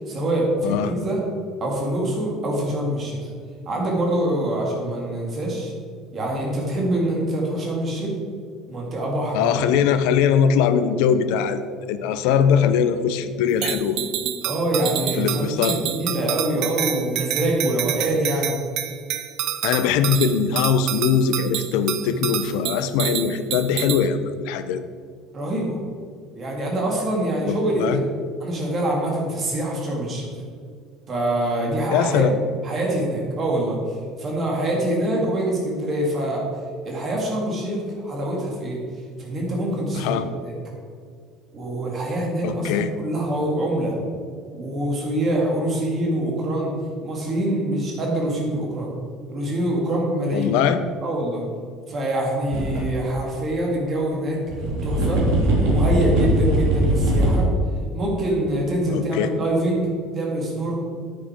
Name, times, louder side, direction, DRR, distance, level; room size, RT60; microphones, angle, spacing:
voice 1, 0.1-1.2 1.6-3.3 3.7-5.7 6.1-8.1 8.7-9.8 14.4-18.5 25.3-25.8 26.4-28.0 28.4-30.3 31.1-32.3 32.6-36.5 36.8-38.8 39.2-40.5 41.5-43.9 44.5-46.7 47.0-48.9 49.3-50.5 51.0-51.4 51.9-54.4 54.8-55.2 55.6-57.5 57.9-60.8, right 1 dB, 25° right, -2 dB, 2.3 m, -25 dB
voice 2, 0.6-0.9 9.3-14.0 15.2-15.8 19.6-24.8 27.5-28.0 31.9-32.4 40.0-40.3 42.4-42.9 50.3-50.8 58.9-59.3, left 7 dB, 70° left, 11 dB, 0.7 m, -21 dB
sound 1, 13.6-24.1, right 11 dB, 50° right, 0.6 m, -28 dB
sound 2, 52.5-52.8 53.2-53.3 54.5-57.4, right 1 dB, 85° right, 3.0 m, -20 dB
9.5 x 9.4 x 4.5 m, 2.1 s
cardioid pair, 180°, 0 cm